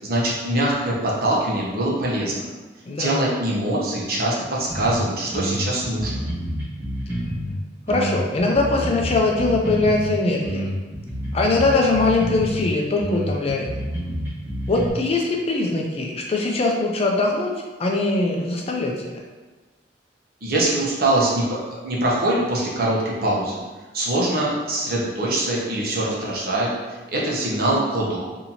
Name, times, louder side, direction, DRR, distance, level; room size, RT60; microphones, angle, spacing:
voice 1, 0.0-2.5 3.0-6.2 20.4-23.6 23.9-26.8 27.1-28.3, right 1 dB, 60° right, -4 dB, 0.9 m, -23 dB
voice 2, 2.9-3.3 7.9-10.6 11.3-13.7 14.7-17.5 17.8-19.1, left 2 dB, 35° left, 0 dB, 0.4 m, -21 dB
sound 1, 4.7-5.0 5.3-7.5 7.9-10.1 10.4-12.6 13.0-14.9, equal, 15° right, 1.4 m, -28 dB
4.1 x 2.8 x 2.8 m, 1.3 s
head